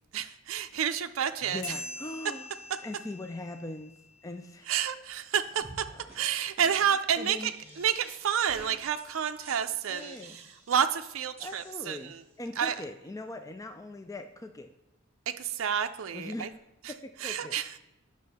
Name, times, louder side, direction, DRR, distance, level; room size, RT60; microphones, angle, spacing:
voice 1, 0.1-1.8 4.7-5.9 6.1-12.2 12.6-12.8 15.3-16.5 16.8-16.9 17.2-17.8, right 8 dB, 75° right, 7 dB, 0.4 m, -30 dB
voice 2, 1.5-2.5 2.8-3.9 4.2-4.7 7.1-7.5 8.5-8.7 9.9-10.4 11.4-14.7 16.1-16.5 16.9-17.6, left 2 dB, 15° left, 7 dB, 0.4 m, -41 dB
sound 1, 1.6-4.7, left 1 dB, 60° left, 3.1 m, -44 dB
sound 2, 5.6-5.8 6.1-6.2 6.6-6.7 7.1-8.2 8.5-9.0 9.4-10.8 11.4-12.3, right 1 dB, 10° right, 3.5 m, -50 dB
9.5 x 6.1 x 4.2 m, 0.94 s
head